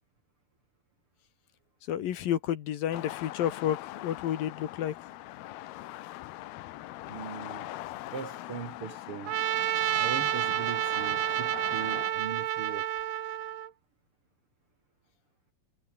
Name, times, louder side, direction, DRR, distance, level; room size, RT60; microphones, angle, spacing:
voice 1, 1.9-4.9, left 11 dB, 70° left, 3.1 m, -30 dB
sound 1, 2.9-12.1, left 16 dB, 85° left, 2.9 m, -42 dB
voice 2, 7.1-7.7 8.1-9.4 10.0-12.9, right 6 dB, 45° right, 2.1 m, -40 dB
Trumpet, 9.3-13.7, right 12 dB, 80° right, 3.7 m, -29 dB
omnidirectional pair, 4.5 m